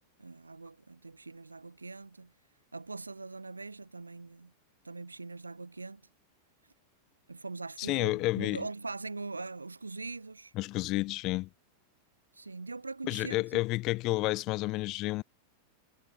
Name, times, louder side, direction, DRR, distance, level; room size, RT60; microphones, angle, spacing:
voice 1, 0.2-2.3 2.7-4.5 4.8-6.0 7.3-10.5 12.3-13.6, right 3 dB, 80° right, 0.7 m, -42 dB
voice 2, 7.8-8.6 10.6-11.5 13.1-15.2, left 20 dB, 40° left, 0.4 m, -30 dB
figure-of-eight pair, 90°, 0 cm